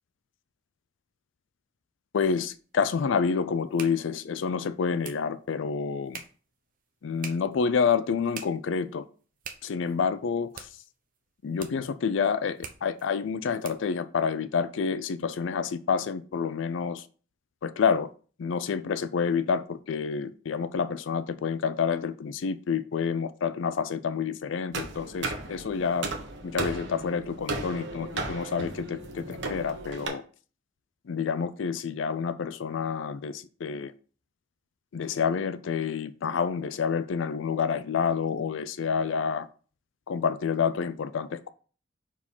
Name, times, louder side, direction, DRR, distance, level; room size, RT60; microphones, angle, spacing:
voice 1, 2.1-6.2 7.0-9.1 9.6-10.7 11.4-17.1 17.6-18.1 18.4-26.1 26.4-30.2 31.1-33.9 34.9-39.5 40.1-41.5, left 6 dB, 75° left, 0.4 m, -28 dB
sound 1, 2.4-14.0, right 6 dB, 45° right, 0.8 m, -48 dB
sound 2, 24.7-30.1, right 3 dB, 70° right, 1.3 m, -35 dB
4.8 x 4.5 x 5.4 m
head